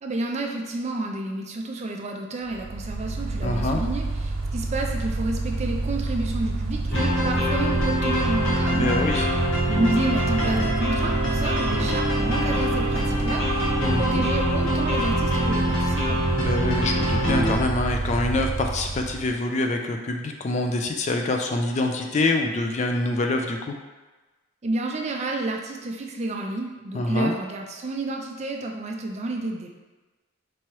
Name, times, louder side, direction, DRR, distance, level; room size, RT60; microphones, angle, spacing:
voice 1, 0.0-9.2 9.7-16.2 24.6-29.7, right 2 dB, 35° right, 1 dB, 0.4 m, -30 dB
Mechanical fan, 2.5-19.3, right 2 dB, 80° right, 0.5 m, -28 dB
voice 2, 3.4-3.8 8.7-9.3 13.8-14.3 16.4-23.8 26.9-27.3, left 2 dB, 35° left, 3 dB, 0.3 m, -25 dB
sound 1, 6.9-17.6, equal, 65° left, 0.9 m, -25 dB
4.5 x 3.0 x 3.0 m, 1.2 s
head